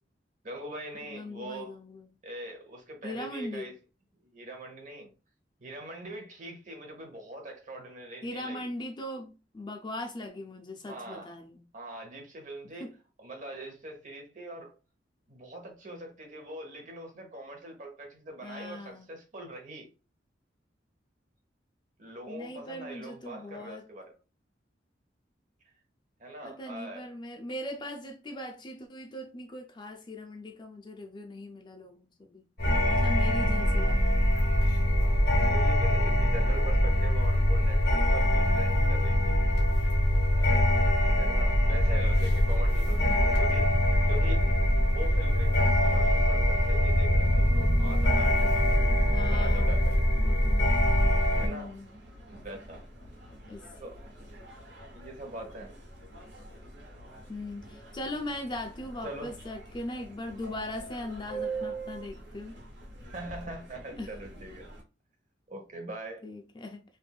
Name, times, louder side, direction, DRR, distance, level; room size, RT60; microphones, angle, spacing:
voice 1, 0.4-1.8 2.2-3.7 4.2-5.1 5.6-8.7 10.8-11.3 11.7-12.9 13.2-14.8 15.3-19.9 22.0-24.1 26.2-27.1 35.0-39.3 40.3-40.7 41.0-43.8 44.1-44.5 44.8-48.9 49.2-50.0 51.3-51.8 52.3-52.8 53.8-54.0 54.9-55.7 59.0-59.4 63.1-64.7 65.5-66.2, right 1 dB, 45° right, 0.9 m, -42 dB
voice 2, 1.1-2.1 3.0-3.7 8.2-11.6 12.8-12.9 18.4-19.1 22.3-23.9 26.4-32.5 32.9-34.0 42.9-43.2 49.1-49.8 50.2-50.8 51.4-51.9 53.5-53.7 57.3-62.6 64.0-64.1 66.2-66.8, left 1 dB, 25° left, 0.4 m, -39 dB
sound 1, 32.6-51.5, left 1 dB, 70° left, 1.2 m, -23 dB
sound 2, 51.2-64.8, right 3 dB, 70° right, 1.3 m, -44 dB
3.2 x 2.5 x 2.2 m
head